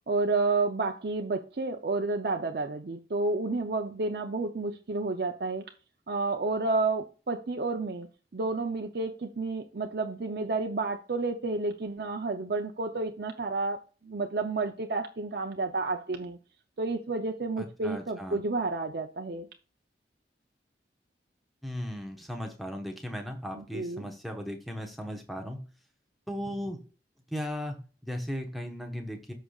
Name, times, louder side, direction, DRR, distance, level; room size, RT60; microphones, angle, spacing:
voice 1, 0.1-5.6 6.1-16.4 16.8-19.5 23.5-24.1, right 3 dB, 60° right, 0.6 m, -30 dB
voice 2, 17.6-18.4 21.6-25.6 26.3-26.8 27.3-29.3, equal, ahead, 1.1 m, -37 dB
13.5 x 5.0 x 2.4 m
head